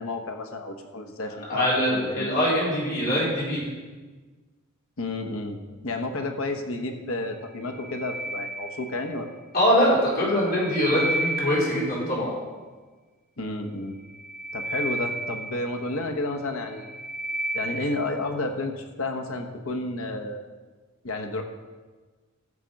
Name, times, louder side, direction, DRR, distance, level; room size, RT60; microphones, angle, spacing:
voice 1, 0.0-2.3 5.0-5.6 5.8-9.3 13.4-14.0 14.5-16.9 17.5-20.4 21.0-21.4, left 2 dB, 70° left, 5 dB, 1.1 m, -31 dB
voice 2, 1.5-3.6 9.5-12.3, equal, 45° left, -6 dB, 4.4 m, -23 dB
sound 1, 7.5-9.2 10.2-12.0 14.0-16.1 16.6-18.1, right 2 dB, 5° right, 3.2 m, -32 dB
13.5 x 7.3 x 5.3 m, 1.3 s
head